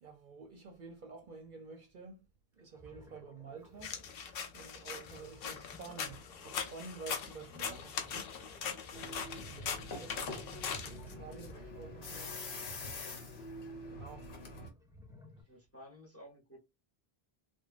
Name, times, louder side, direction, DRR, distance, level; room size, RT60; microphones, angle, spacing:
voice 1, 0.0-2.3 2.6-4.0 4.5-8.4 9.4-12.4 13.9-14.3, right 4 dB, 55° right, 0.7 m, -50 dB
sound 1, 2.6-13.2 14.5-15.4, left 2 dB, 5° right, 0.3 m, -58 dB
sound 2, 3.8-11.5, left 7 dB, 70° left, 0.8 m, -41 dB
voice 2, 7.4-7.9 15.5-16.6, equal, 15° left, 0.8 m, -54 dB
sound 3, 8.9-14.7, left 2 dB, 85° left, 1.1 m, -45 dB
3.1 x 2.2 x 2.4 m
omnidirectional pair, 1.0 m